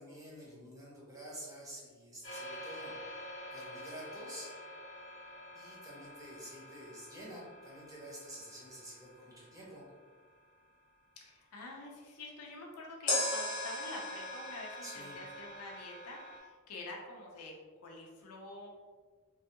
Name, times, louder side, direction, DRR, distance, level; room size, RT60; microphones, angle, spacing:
voice 1, 0.0-4.5 5.5-9.8 14.8-15.2, right 1 dB, 15° right, -5 dB, 0.8 m, -49 dB
sound 1, 2.2-10.2 13.1-16.4, left 1 dB, 35° left, 0.9 m, -42 dB
voice 2, 11.2-17.5 17.8-18.7, left 2 dB, 70° left, -1 dB, 0.6 m, -47 dB
3.2 x 2.2 x 2.9 m, 1.5 s
head